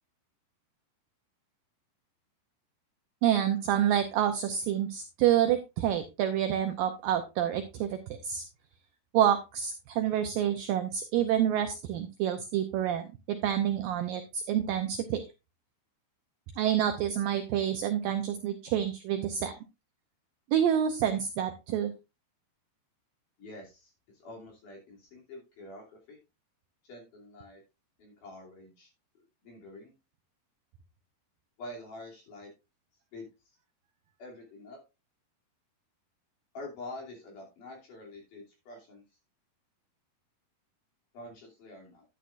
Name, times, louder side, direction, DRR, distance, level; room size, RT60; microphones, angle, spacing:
voice 1, 3.2-8.4 9.1-15.2 16.6-19.5 20.5-21.9, right 10 dB, 80° right, 6 dB, 2.0 m, -28 dB
voice 2, 23.4-26.2 26.8-27.6 28.0-28.9 29.4-29.9 31.6-32.5 33.1-33.3 34.2-34.8 36.5-39.0 41.1-42.0, left 2 dB, 50° left, -1 dB, 4.2 m, -46 dB
10.5 x 10.0 x 2.5 m, 0.26 s
omnidirectional pair, 4.8 m